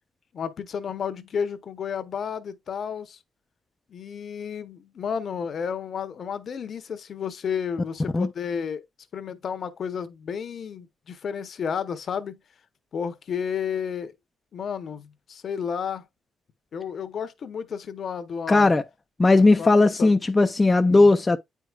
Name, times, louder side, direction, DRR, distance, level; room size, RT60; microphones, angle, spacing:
voice 1, 0.3-3.2 3.9-8.8 9.1-12.4 12.9-14.1 14.5-16.1 16.7-18.7 19.6-19.7 20.0-20.1 20.8-21.1, left 7 dB, 55° left, 0.8 m, -32 dB
voice 2, 18.5-18.8 19.2-21.4, left 3 dB, 20° left, 0.4 m, -17 dB
9.0 x 4.6 x 2.3 m
cardioid pair, 90°, 0 cm